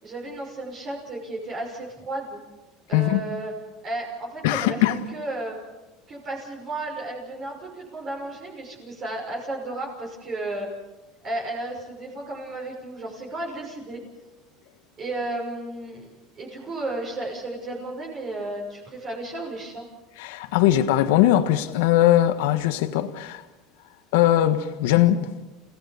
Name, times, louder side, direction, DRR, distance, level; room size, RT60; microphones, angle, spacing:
voice 1, 0.0-2.4 2.9-3.5 3.8-4.8 5.1-5.6 6.1-10.7 11.2-14.0 15.0-19.9, right 2 dB, 35° right, 6.0 m, -33 dB
voice 2, 4.4-5.0 20.2-23.4 24.1-25.3, left 13 dB, 85° left, 1.5 m, -20 dB
29.0 x 17.5 x 7.0 m
cardioid pair, 140°, 0 cm